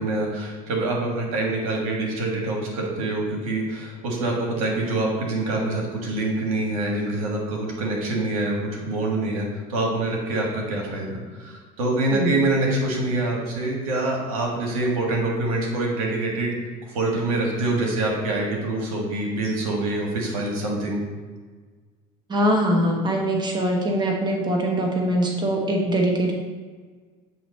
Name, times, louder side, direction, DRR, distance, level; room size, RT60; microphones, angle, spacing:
voice 1, 0.0-16.6 16.9-21.0, right 2 dB, 90° right, -1 dB, 1.4 m, -25 dB
voice 2, 22.3-26.3, right 1 dB, 25° right, 0 dB, 1.1 m, -22 dB
7.9 x 2.9 x 4.2 m, 1.4 s
supercardioid pair, 95°, 18 cm